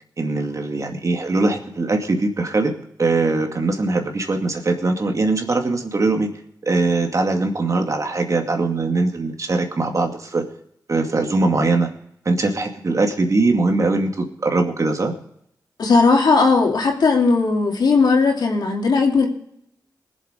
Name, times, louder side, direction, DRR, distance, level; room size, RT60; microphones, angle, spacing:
voice 1, 0.2-2.7 3.0-6.3 6.6-10.4 10.9-11.9 12.3-15.1, right 3 dB, 50° right, 3 dB, 2.2 m, -21 dB
voice 2, 15.8-19.3, left 4 dB, 80° left, 1 dB, 2.6 m, -17 dB
20.0 x 7.3 x 5.1 m, 0.72 s
cardioid pair, 60°, 7 cm